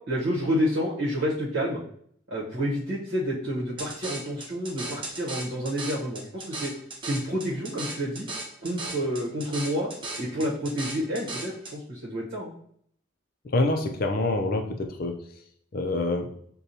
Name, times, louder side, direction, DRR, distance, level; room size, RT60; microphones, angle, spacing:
voice 1, 0.1-1.8 2.3-6.7 7.0-8.3 8.6-9.9 10.2-12.5, equal, 60° right, -6 dB, 1.0 m, -29 dB
sound 1, 3.8-11.7, right 2 dB, 25° right, 0.6 m, -37 dB
voice 2, 13.5-15.2 15.7-16.3, left 2 dB, 45° left, 4 dB, 0.5 m, -26 dB
6.5 x 2.2 x 2.7 m, 0.64 s
head